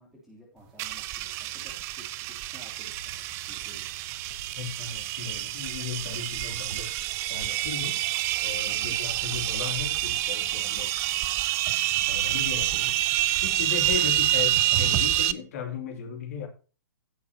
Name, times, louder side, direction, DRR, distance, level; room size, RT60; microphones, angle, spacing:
voice 1, 0.0-3.9 8.8-9.0, equal, 5° right, 3.1 m, -53 dB
sound 1, 0.8-15.3, right 14 dB, 25° right, 0.5 m, -27 dB
sound 2, 2.9-3.2 4.1-7.1 8.3-10.6 11.9-13.0, left 3 dB, 80° left, 0.9 m, -48 dB
voice 2, 4.6-6.9 7.3-8.0 8.4-10.9 11.7-11.8 12.0-13.0 13.4-16.5, left 7 dB, 45° left, 3.0 m, -36 dB
15.5 x 7.1 x 2.9 m
figure-of-eight pair, 115°, 11 cm